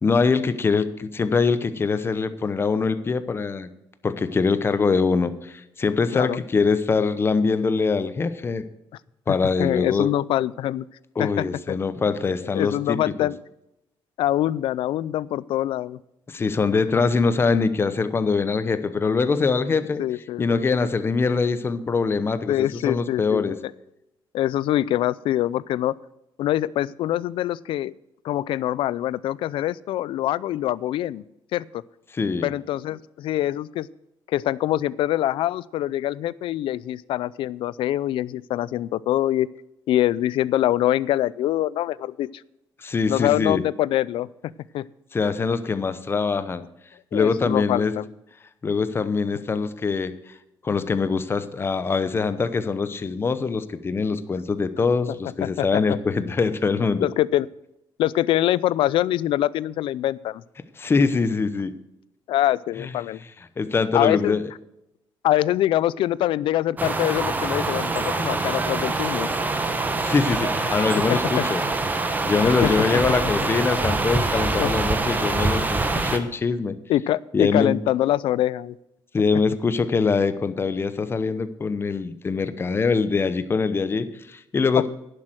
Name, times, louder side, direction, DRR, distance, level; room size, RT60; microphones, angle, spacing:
voice 1, 0.0-3.7 4.0-8.7 9.3-10.1 11.2-13.0 16.3-20.0 20.4-23.6 32.1-32.5 42.8-43.6 45.1-46.6 47.1-47.9 48.6-50.1 50.6-57.1 60.8-61.7 62.8-62.9 63.6-64.4 70.0-71.6 72.2-76.8 77.3-77.8 79.1-84.9, left 4 dB, 25° left, 12 dB, 0.8 m, -23 dB
voice 2, 9.6-10.9 11.2-11.8 12.5-13.4 14.2-16.0 20.0-20.6 22.5-23.7 24.3-25.9 26.4-27.9 28.2-31.2 31.5-31.8 32.4-33.9 34.3-39.5 39.9-42.3 43.1-44.9 47.1-48.1 55.4-55.8 57.0-57.5 58.0-60.4 62.3-63.2 63.9-64.4 65.2-69.3 70.6-70.8 71.1-71.5 72.4-72.7 74.6-74.7 76.9-78.8 84.8-84.9, left 13 dB, 75° left, 21 dB, 0.4 m, -24 dB
sound 1, 66.8-76.2, right 3 dB, 20° right, 1.2 m, -25 dB
11.0 x 7.6 x 7.8 m, 0.86 s
cardioid pair, 130°, 9 cm